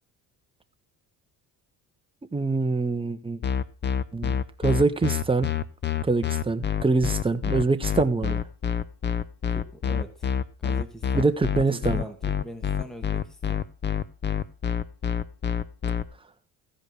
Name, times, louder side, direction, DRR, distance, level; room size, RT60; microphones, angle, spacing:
voice 1, 2.3-3.4 4.1-5.5 6.0-8.4 11.1-12.0, right 3 dB, 15° right, 8 dB, 1.2 m, -24 dB
sound 1, 3.4-16.0, left 8 dB, 30° left, 0.8 m, -26 dB
voice 2, 9.5-10.3 10.6-11.3 11.5-12.2 12.4-13.6, equal, ahead, 7 dB, 1.5 m, -42 dB
15.0 x 5.2 x 6.3 m, 0.39 s
cardioid pair, 105°, 38 cm